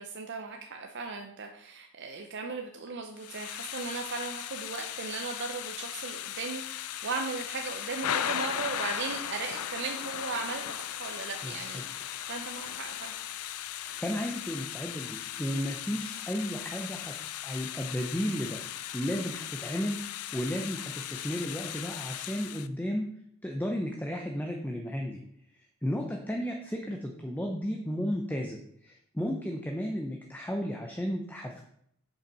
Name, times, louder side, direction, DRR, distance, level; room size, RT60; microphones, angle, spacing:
voice 1, 0.0-13.1, right 4 dB, 50° right, 3 dB, 0.7 m, -37 dB
Thunder / Rain, 3.2-22.7, left 11 dB, 90° left, 0.5 m, -37 dB
voice 2, 11.4-11.8 14.0-18.6 18.9-20.0 20.3-23.1 23.4-25.2 25.5-31.6, equal, 10° left, 2 dB, 0.7 m, -33 dB
7.3 x 5.4 x 5.4 m, 0.70 s
head